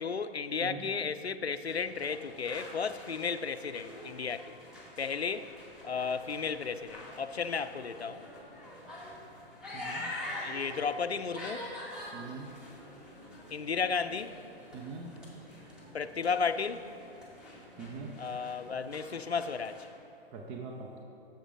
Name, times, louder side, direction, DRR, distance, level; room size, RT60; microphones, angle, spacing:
voice 1, 0.0-4.6 5.0-5.5 5.8-8.3 10.4-11.7 13.5-14.4 15.9-16.9 18.2-19.9, left 5 dB, 85° left, 0.5 m, -34 dB
sound 1, 1.6-19.9, left 1 dB, 5° right, 1.9 m, -46 dB
voice 2, 9.7-10.1 12.1-12.5 14.7-15.1 15.6-15.7 17.8-18.1 20.3-20.9, right 4 dB, 20° right, 0.7 m, -42 dB
13.0 x 7.2 x 3.7 m
figure-of-eight pair, 115°, 31 cm